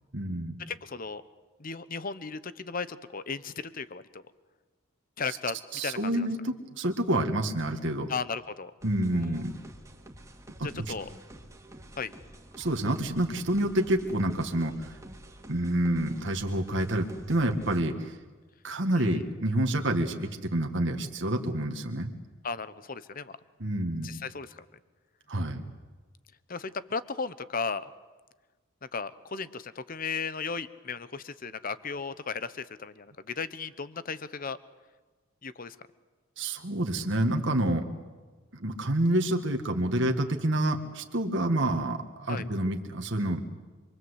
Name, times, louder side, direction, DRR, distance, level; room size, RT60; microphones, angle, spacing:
voice 1, 0.1-0.6 5.7-8.1 8.8-9.5 12.6-14.9 15.5-18.1 18.6-22.1 23.6-24.2 25.3-25.6 36.4-37.9 38.6-43.4, right 1 dB, 60° right, 4 dB, 1.9 m, -28 dB
voice 2, 0.7-1.2 1.6-4.2 5.2-5.6 5.8-6.3 8.1-8.7 9.1-9.4 10.6-11.1 11.9-12.1 18.9-19.2 22.4-23.4 24.0-24.6 26.5-27.9 28.9-34.6 35.4-35.8 42.3-42.5, left 5 dB, 45° left, 15 dB, 0.9 m, -35 dB
sound 1, 8.8-17.8, right 1 dB, 15° right, 2.2 m, -49 dB
27.0 x 23.0 x 8.2 m, 1.3 s
head